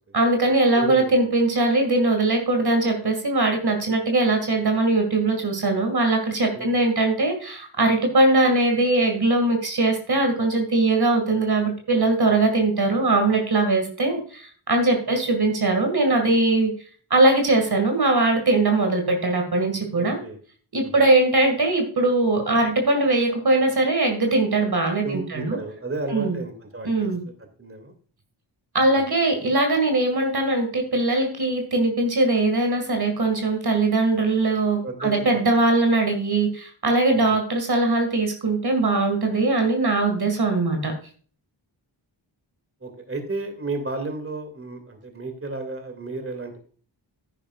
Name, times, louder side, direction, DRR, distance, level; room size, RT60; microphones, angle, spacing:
voice 1, 0.1-16.7 17.1-20.2 20.7-25.6 26.1-26.4 26.8-27.2 28.7-40.9, right 2 dB, 55° right, 4 dB, 2.1 m, -21 dB
voice 2, 0.8-1.1 6.5-6.7 15.1-15.2 19.9-20.4 20.8-20.9 25.0-27.3 27.6-27.9 28.8-29.0 34.8-35.4 37.1-37.3 42.8-46.6, right 3 dB, 30° right, 6 dB, 2.4 m, -33 dB
10.0 x 9.9 x 2.4 m, 0.43 s
cardioid pair, 50°, 46 cm